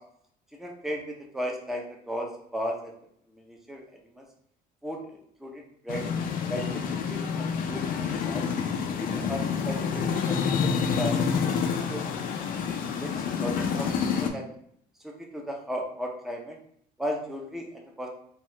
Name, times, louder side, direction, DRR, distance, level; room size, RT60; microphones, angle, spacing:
voice 1, 0.6-2.3 2.5-2.7 3.5-3.8 4.2-4.3 4.8-5.0 5.4-6.0 6.5-8.5 9.0-12.0 12.5-13.1 13.4-13.9 14.2-14.4 15.3-16.6 17.0-18.1, equal, ahead, 0 dB, 0.5 m, -35 dB
sound 1, 5.9-14.3, left 6 dB, 55° left, 0.4 m, -28 dB
2.8 x 2.4 x 3.0 m, 0.67 s
cardioid pair, 110°, 17 cm